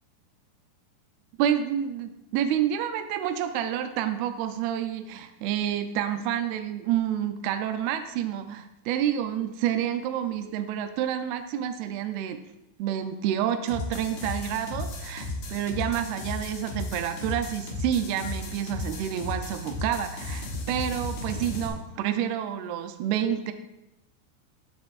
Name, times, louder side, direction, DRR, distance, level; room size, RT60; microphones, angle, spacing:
voice 1, 1.4-12.4 12.8-23.5, right 10 dB, 85° right, 8 dB, 2.2 m, -29 dB
sound 1, 13.7-21.7, left 2 dB, 85° left, 1.5 m, -35 dB
13.0 x 7.9 x 2.4 m, 0.92 s
omnidirectional pair, 5.1 m